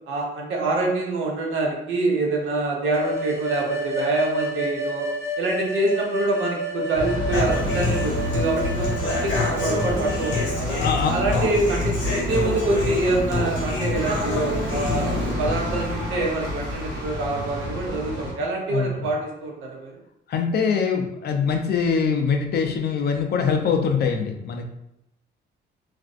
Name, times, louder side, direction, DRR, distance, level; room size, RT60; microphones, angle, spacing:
voice 1, 0.1-5.1 5.4-10.8 11.1-11.9 12.2-19.9, right 2 dB, 80° right, -1 dB, 0.7 m, -25 dB
sound 1, 2.9-10.5, right 1 dB, 15° right, 0.5 m, -30 dB
sound 2, 6.9-18.3, left 1 dB, 60° right, 1.0 m, -29 dB
Human voice / Acoustic guitar, 7.3-15.3, left 2 dB, 75° left, 0.9 m, -28 dB
voice 2, 10.5-11.1 18.7-19.1 20.3-24.6, left 6 dB, 55° left, 4 dB, 0.4 m, -23 dB
2.4 x 2.0 x 2.5 m, 0.82 s
cardioid pair, 90°, 20 cm